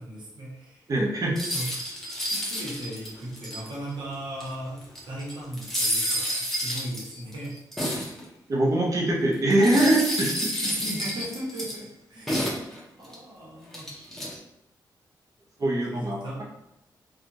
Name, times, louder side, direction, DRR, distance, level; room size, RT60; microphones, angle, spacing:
voice 1, 0.0-0.9 1.4-1.8 2.1-7.6 8.0-8.4 10.6-12.5 13.0-13.9 15.9-16.4, right 1 dB, 80° right, -4 dB, 1.0 m, -37 dB
voice 2, 0.9-1.4 8.5-10.4 15.6-16.4, right 1 dB, 45° right, -2 dB, 0.8 m, -23 dB
sound 1, 1.3-3.9 4.4-4.5 4.8-8.2 9.5-11.8 12.3-13.1 13.7-14.4, equal, 5° left, 0.8 m, -30 dB
2.8 x 2.4 x 2.6 m, 0.87 s
cardioid pair, 80°, 8 cm